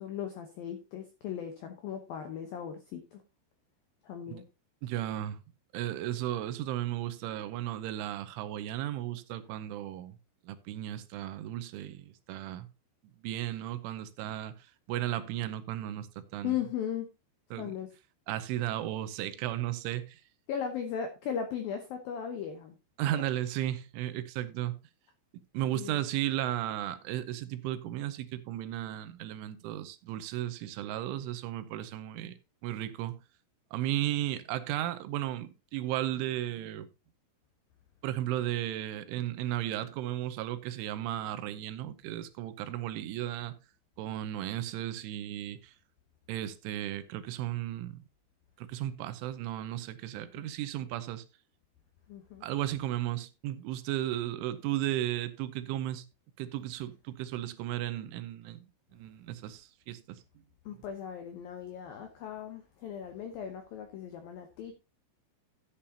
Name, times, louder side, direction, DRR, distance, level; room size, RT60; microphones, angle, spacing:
voice 1, 0.0-3.2 4.0-4.4 16.4-17.1 17.6-17.9 20.5-22.8 23.1-23.2 25.7-26.0 50.1-50.5 52.1-52.4 60.7-64.7, left 8 dB, 85° left, 2.1 m, -37 dB
voice 2, 4.8-5.4 5.7-10.2 10.4-12.7 13.2-14.5 14.9-16.6 17.5-17.7 18.3-20.2 23.0-24.8 25.5-32.4 32.6-33.2 33.7-36.9 38.0-43.6 44.0-45.7 46.3-48.0 48.6-51.2 52.4-56.0 56.4-58.7 58.9-60.2, right 13 dB, 80° right, 3.2 m, -35 dB
13.0 x 8.7 x 2.8 m
omnidirectional pair, 5.7 m